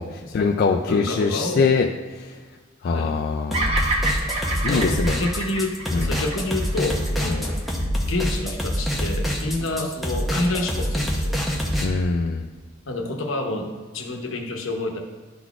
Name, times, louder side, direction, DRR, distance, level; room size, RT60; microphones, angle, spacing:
voice 1, 0.0-1.9 2.2-2.4 2.8-3.8 4.6-5.2 5.9-6.1 7.3-7.5 11.8-12.5, left 4 dB, 50° left, 2 dB, 0.3 m, -23 dB
voice 2, 0.9-1.7 2.8-3.1 4.7-7.6 8.0-11.3 12.9-13.7 13.9-15.0, left 2 dB, 75° left, 3 dB, 0.9 m, -28 dB
sound 1, 3.5-11.9, equal, ahead, 0.7 m, -25 dB
Bird vocalization bird call bird song, 3.5-7.8, right 2 dB, 30° right, 0.8 m, -28 dB
11.0 x 4.0 x 2.4 m, 1.4 s
head